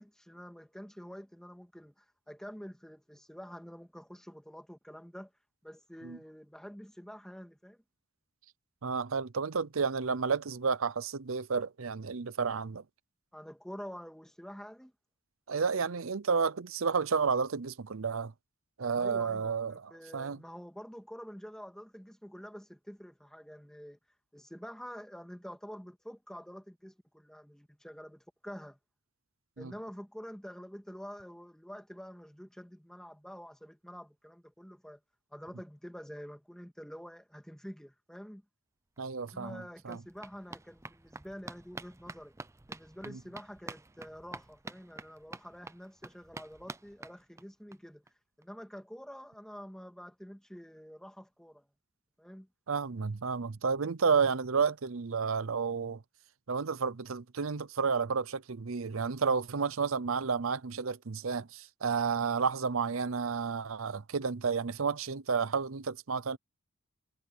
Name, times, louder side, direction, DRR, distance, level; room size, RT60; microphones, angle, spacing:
voice 1, 0.0-5.3 5.6-7.8 13.3-14.9 19.0-24.0 24.3-28.8 29.6-35.0 35.3-38.4 39.2-42.4 42.7-48.0 48.4-51.7 52.2-52.5, equal, 5° left, 2.1 m, -47 dB
voice 2, 8.8-12.8 15.5-18.3 18.8-20.4 29.6-29.7 39.0-40.0 43.1-43.2 52.7-56.0 56.5-66.4, right 5 dB, 70° right, 0.7 m, -31 dB
sound 1, 39.0-39.1 39.3-47.8 48.1-48.2 48.4-48.5 48.8-48.9, right 3 dB, 15° right, 0.5 m, -48 dB
head